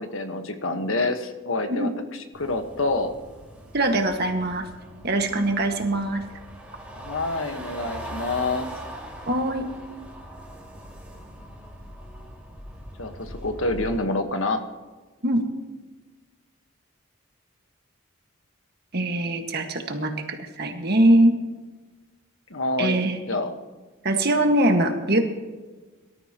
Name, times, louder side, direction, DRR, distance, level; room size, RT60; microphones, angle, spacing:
voice 1, 0.0-3.1 6.9-8.7 13.0-14.6 22.5-23.0 23.3-23.5, left 2 dB, 80° left, 7 dB, 1.4 m, -27 dB
sound 1, 2.3-14.0, equal, 5° right, 2.4 m, -41 dB
voice 2, 3.7-4.6 5.0-6.2 9.3-9.7 15.2-15.4 18.9-21.3 22.8-23.2 24.0-25.2, right 1 dB, 50° right, 4 dB, 1.7 m, -22 dB
23.5 x 13.5 x 3.0 m, 1.3 s
head